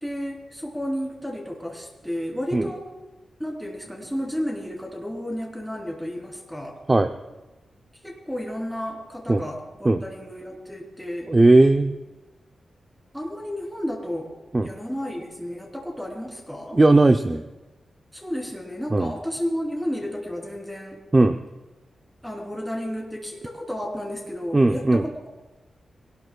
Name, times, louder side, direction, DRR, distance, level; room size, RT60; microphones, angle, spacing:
voice 1, 0.0-2.8 3.4-6.8 8.0-11.3 13.1-14.3 14.6-16.8 18.1-21.0 22.2-25.3, equal, ahead, -2 dB, 3.2 m, -32 dB
voice 2, 11.3-12.0 14.5-14.7 16.7-17.4 18.9-19.1 21.1-21.4 24.5-25.0, right 2 dB, 20° right, 7 dB, 0.5 m, -17 dB
23.0 x 18.5 x 2.3 m, 1.1 s
wide cardioid pair, 135°, 0 cm